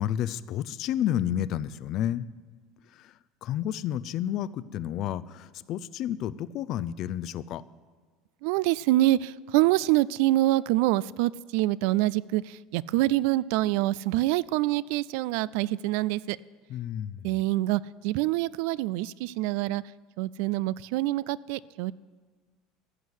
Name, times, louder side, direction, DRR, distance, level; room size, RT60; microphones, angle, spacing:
voice 1, 0.0-2.3 3.0-3.1 3.4-7.6 16.7-17.4, left 11 dB, 50° left, 16 dB, 0.5 m, -31 dB
voice 2, 8.4-16.4 17.2-19.8 20.2-21.9, right 17 dB, 75° right, 21 dB, 0.3 m, -26 dB
14.5 x 6.3 x 9.6 m, 1.4 s
supercardioid pair, 125°, 0 cm